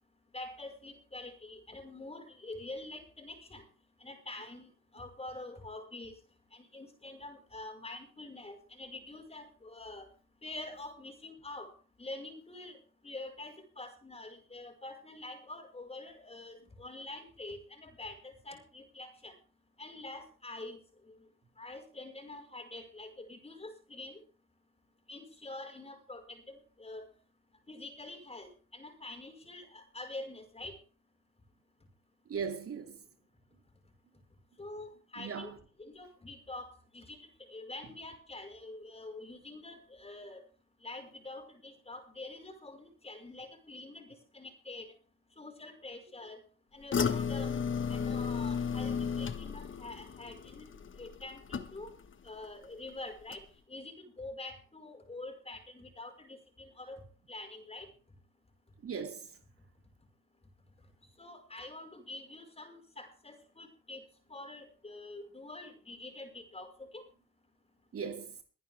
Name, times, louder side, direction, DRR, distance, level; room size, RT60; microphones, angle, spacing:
voice 1, 0.3-3.6 4.0-6.1 6.5-10.1 10.4-11.7 12.0-12.8 13.0-19.3 19.8-20.8 21.6-24.2 25.1-27.1 27.7-30.8 34.6-35.5 35.8-40.4 40.8-44.9 45.4-46.4 46.7-47.6 47.9-50.7 51.0-51.9 52.2-53.4 53.7-57.0 57.3-57.9 61.2-64.0 64.3-67.0, left 2 dB, 20° left, 5.2 m, -46 dB
voice 2, 32.3-33.0 35.2-35.5 58.8-59.4 67.9-68.3, right 6 dB, 50° right, 2.5 m, -38 dB
sound 1, 46.9-52.1 52.4-52.9 53.3-53.4, left 6 dB, 40° left, 1.4 m, -34 dB
23.0 x 10.0 x 3.6 m
cardioid pair, 90°, 30 cm